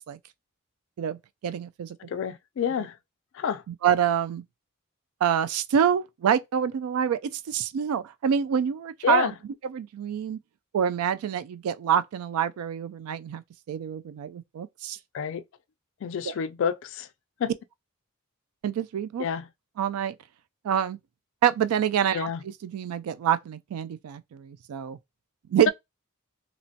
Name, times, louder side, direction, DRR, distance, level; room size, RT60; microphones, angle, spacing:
voice 1, 1.0-2.0 3.7-4.4 5.2-9.3 9.6-10.4 10.7-13.4 13.7-15.0 16.3-16.4 18.6-19.3 19.8-20.2 20.6-21.0 21.4-22.3 22.6-25.0 25.5-25.7, right 8 dB, 85° right, 0.3 m, -26 dB
voice 2, 2.0-3.0 3.3-3.6 9.0-9.3 15.1-15.4 16.0-17.1 17.4-17.5 19.2-19.5 22.1-22.4, left 7 dB, 60° left, 0.3 m, -28 dB
3.0 x 2.1 x 2.6 m
head